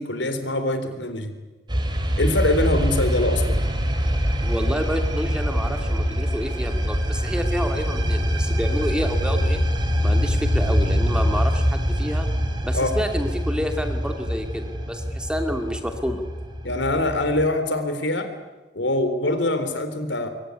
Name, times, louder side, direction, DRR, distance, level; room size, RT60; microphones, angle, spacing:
voice 1, 0.0-1.3 2.2-3.6 12.7-12.9 16.6-18.3 18.7-20.3, left 1 dB, 75° left, 9 dB, 3.8 m, -24 dB
sound 1, 1.7-17.4, equal, 25° right, 3.3 m, -24 dB
voice 2, 4.4-9.6 10.0-12.3 12.6-16.2, equal, 5° right, 5 dB, 2.5 m, -29 dB
25.0 x 23.5 x 9.7 m, 1.1 s
head